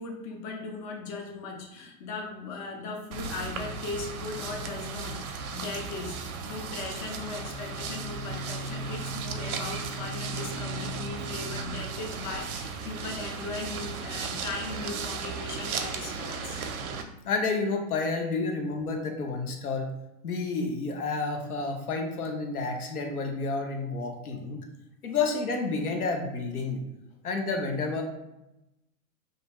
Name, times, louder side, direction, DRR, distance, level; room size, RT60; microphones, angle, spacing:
voice 1, 0.0-16.6, left 3 dB, 30° left, 1 dB, 0.4 m, -38 dB
sound 1, 3.1-17.0, right 4 dB, 75° right, 0.5 m, -35 dB
voice 2, 16.9-19.9 20.2-24.6 25.0-26.8 27.2-28.0, left 3 dB, 90° left, 3 dB, 0.7 m, -30 dB
2.6 x 2.2 x 2.8 m, 0.91 s
hypercardioid pair, 110°, 43 cm